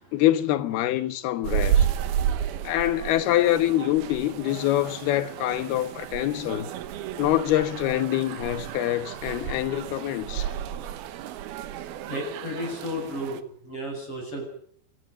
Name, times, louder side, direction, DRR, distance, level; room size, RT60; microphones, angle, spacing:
voice 1, 0.1-1.9 2.6-6.7 7.2-10.5, left 14 dB, 85° left, 3.2 m, -25 dB
sound 1, 1.4-13.4, right 9 dB, 85° right, 3.1 m, -31 dB
voice 2, 2.2-2.7 7.0-7.2 12.1-14.4, equal, 35° left, 7.7 m, -34 dB
25.0 x 15.0 x 9.3 m
omnidirectional pair, 4.4 m